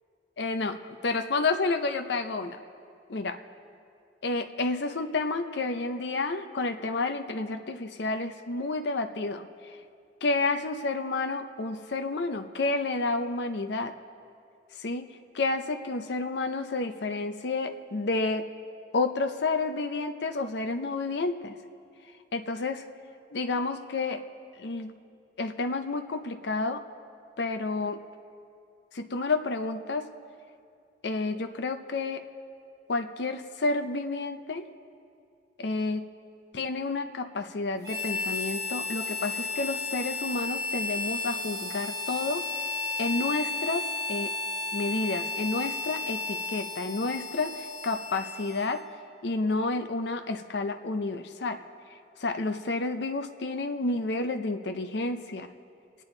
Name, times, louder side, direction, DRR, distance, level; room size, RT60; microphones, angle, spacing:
voice 1, 0.4-2.6 3.1-3.4 4.2-9.8 10.2-13.9 14.8-15.1 15.3-18.5 18.9-21.5 22.3-22.9 23.3-24.2 24.6-24.9 25.4-26.8 27.4-28.0 28.9-30.1 31.0-32.2 32.9-34.7 35.6-36.0 36.5-42.5 43.0-44.3 44.7-48.8 49.2-51.6 52.2-55.5, left 3 dB, 70° left, 7 dB, 0.6 m, -30 dB
Harmonica, 37.8-48.9, left 4 dB, 25° right, 2.7 m, -33 dB
23.5 x 9.0 x 3.8 m, 2.4 s
head